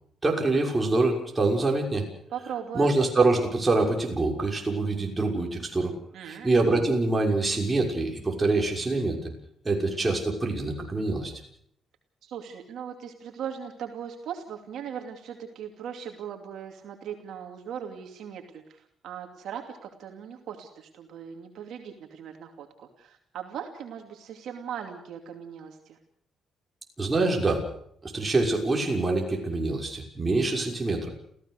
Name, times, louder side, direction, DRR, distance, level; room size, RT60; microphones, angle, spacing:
voice 1, 0.2-2.0 2.7-5.9 6.3-9.3 9.6-11.3 27.0-27.6 28.0-31.1, right 2 dB, 20° right, 0 dB, 6.2 m, -25 dB
voice 2, 2.3-2.9 6.1-6.5 12.2-26.0, right 8 dB, 75° right, 4 dB, 2.5 m, -39 dB
29.5 x 15.5 x 6.6 m, 0.71 s
cardioid pair, 90°, 0 cm